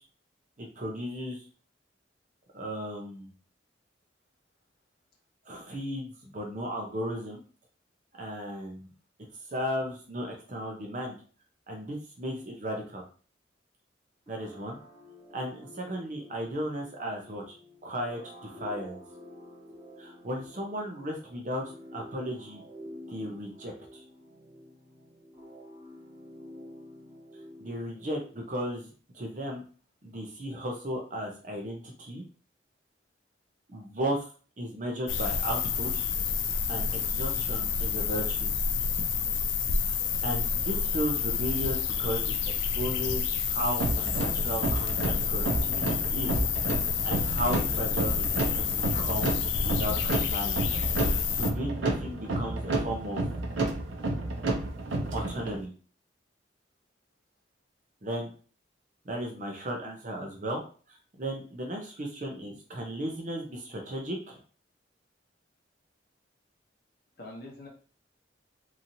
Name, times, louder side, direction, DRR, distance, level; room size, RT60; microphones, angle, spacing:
voice 1, 0.6-1.4 2.5-3.3 5.5-7.4 8.2-8.9 9.5-11.2 11.7-13.0 14.3-14.8 15.3-17.6 17.8-19.0 20.0-22.6 23.1-24.0 27.6-29.6 30.0-32.2 33.7-34.3 34.6-36.1 36.7-38.5 39.8-46.4 47.0-49.3 49.6-50.6 50.9-53.2 55.1-55.7 58.0-58.3 59.1-60.6 60.9-64.4, equal, 40° right, 1 dB, 0.6 m, -35 dB
sound 1, 14.3-28.8, left 1 dB, 20° right, 1.3 m, -49 dB
sound 2, 35.1-51.5, left 6 dB, 70° left, 0.3 m, -29 dB
voice 2, 38.7-39.3 67.2-67.7, left 1 dB, 50° left, -1 dB, 0.8 m, -46 dB
sound 3, 43.8-55.6, right 2 dB, 85° right, 0.6 m, -31 dB
2.9 x 2.6 x 2.7 m, 0.39 s
head